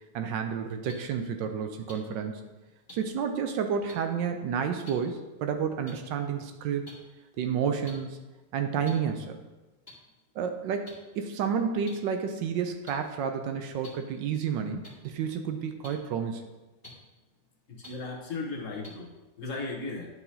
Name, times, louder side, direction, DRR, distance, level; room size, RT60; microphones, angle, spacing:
voice 1, 0.1-2.4 2.9-6.9 7.4-8.2 8.5-9.4 10.4-16.4, right 7 dB, 75° right, 6 dB, 1.1 m, -30 dB
sound 1, 0.9-1.0 1.9-2.0 2.9-3.0 3.9-4.0 4.9-5.0 5.9-6.0 6.9-7.0 7.9-8.0 8.8-8.9 9.9-10.0 10.9-11.0 11.9-12.0 12.9-13.0 13.8-13.9 14.8-14.9 15.8-15.9 16.8-16.9 17.8-17.9 18.8-18.9, left 1 dB, 10° left, 1.8 m, -46 dB
voice 2, 17.7-19.1 19.4-20.1, left 3 dB, 50° left, -2 dB, 1.0 m, -36 dB
11.0 x 4.7 x 2.7 m, 1.1 s
omnidirectional pair, 2.4 m